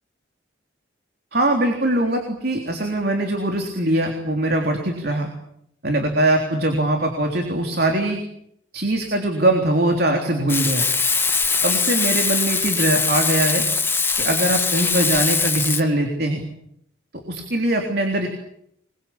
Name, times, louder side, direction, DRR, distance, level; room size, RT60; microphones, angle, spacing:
voice 1, 1.3-5.3 5.8-8.2 8.7-10.9 11.6-13.6 14.2-16.4 17.3-18.3, right 1 dB, 50° right, 3 dB, 3.6 m, -21 dB
Frying (food), 10.5-15.8, left 5 dB, 10° left, 1.4 m, -21 dB
27.0 x 22.5 x 8.7 m, 0.74 s
head